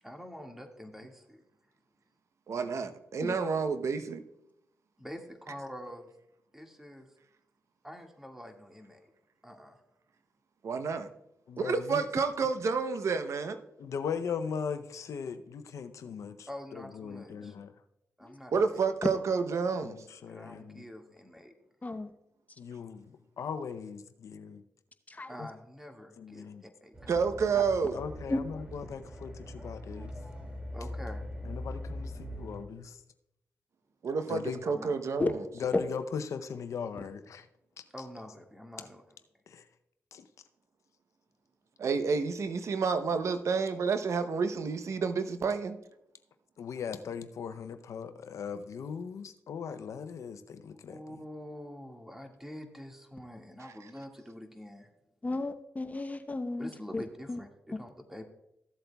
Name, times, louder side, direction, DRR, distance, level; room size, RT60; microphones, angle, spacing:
voice 1, 0.0-1.4 5.0-6.1 6.5-7.1 7.8-9.1 9.4-9.8 16.5-17.6 18.2-18.8 20.3-21.5 25.3-27.1 27.5-27.6 30.7-31.3 34.6-34.9 37.9-39.2 50.9-54.9 56.6-58.2, equal, 5° right, 1.8 m, -46 dB
voice 2, 2.5-4.2 10.6-11.1 11.6-13.6 18.5-20.0 27.1-28.0 34.0-35.4 41.8-45.8 53.6-53.7, right 5 dB, 65° right, 0.7 m, -30 dB
voice 3, 11.5-12.0 13.8-17.7 19.8-20.8 22.6-24.6 25.4-25.5 26.2-26.6 27.9-30.1 31.4-33.0 34.3-34.6 35.6-37.5 37.8-37.9 39.5-39.6 40.1-40.2 46.6-51.0, left 6 dB, 75° left, 0.6 m, -39 dB
sound 1, 26.9-32.7, left 1 dB, 20° right, 2.3 m, -42 dB
voice 4, 55.2-57.0 57.3-57.4, left 2 dB, 30° left, 0.8 m, -33 dB
15.0 x 7.8 x 2.3 m
supercardioid pair, 50°, 5 cm